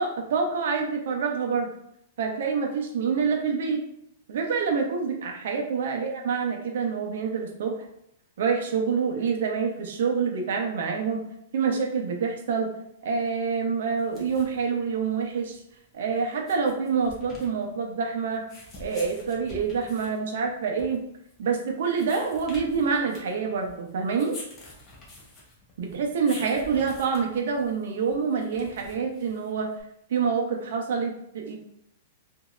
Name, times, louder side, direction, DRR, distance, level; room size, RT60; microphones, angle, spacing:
voice 1, 0.0-1.7 2.2-3.8 4.3-7.8 8.4-11.2 11.5-12.7 13.0-15.6 15.9-18.4 18.8-21.0 21.4-24.3 25.8-29.7 30.1-31.6, right 5 dB, 70° right, 1 dB, 0.7 m, -27 dB
sound 1, 13.9-29.8, left 1 dB, 20° left, 0.8 m, -48 dB
3.0 x 2.6 x 2.4 m, 0.75 s
hypercardioid pair, 155°, 0 cm